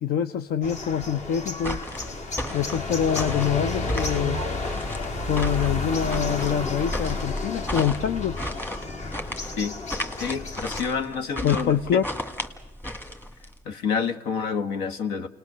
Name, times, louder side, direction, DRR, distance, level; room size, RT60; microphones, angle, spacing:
voice 1, 0.0-1.8 2.5-4.4 5.2-8.4 11.4-12.1, left 8 dB, 65° left, 11 dB, 0.8 m, -25 dB
sound 1, 0.6-10.8, left 2 dB, 45° left, 1.8 m, -31 dB
sound 2, 1.6-13.6, equal, 10° left, 1.9 m, -35 dB
voice 2, 10.1-11.8 13.6-15.3, left 6 dB, 85° left, 9 dB, 1.6 m, -28 dB
28.5 x 19.5 x 6.7 m, 1.0 s
cardioid pair, 110°, 17 cm